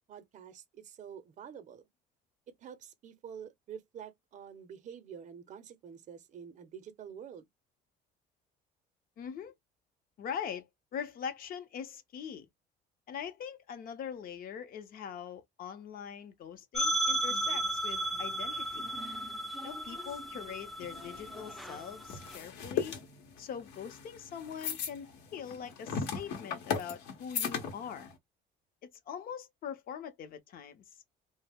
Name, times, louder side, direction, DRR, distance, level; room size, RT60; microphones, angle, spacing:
voice 1, 0.1-1.8 2.6-7.5, right 8 dB, 45° right, 0.6 m, -48 dB
voice 2, 9.2-9.5 10.2-12.5 13.1-18.9 19.6-23.0 23.4-28.1 28.8-30.8, left 8 dB, 60° left, 0.6 m, -42 dB
sound 1, 16.7-22.4, right 1 dB, ahead, 0.4 m, -34 dB
sound 2, 20.8-28.1, left 7 dB, 90° left, 0.8 m, -38 dB
2.2 x 2.0 x 3.3 m
cardioid pair, 110°, 17 cm